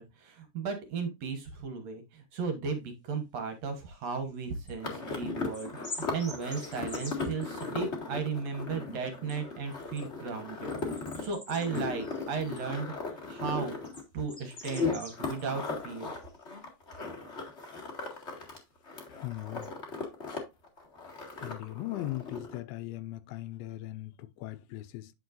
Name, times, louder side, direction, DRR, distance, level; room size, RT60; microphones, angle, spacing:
voice 1, 0.0-13.8 14.1-16.1, right 5 dB, 65° right, 1.7 m, -35 dB
sound 1, 4.0-4.7 5.1-5.2 5.5-7.7 9.3-9.4 9.7-10.1 10.7-12.6 13.8-15.6 16.0-16.4 18.1-18.2 19.6-19.7, left 2 dB, 10° left, 2.2 m, -46 dB
sound 2, 4.8-18.6 18.8-20.4 20.6-22.6, left 4 dB, 45° left, 0.8 m, -37 dB
voice 2, 19.1-19.8 21.4-25.2, left 16 dB, 85° left, 2.3 m, -39 dB
9.5 x 6.2 x 2.5 m
omnidirectional pair, 4.5 m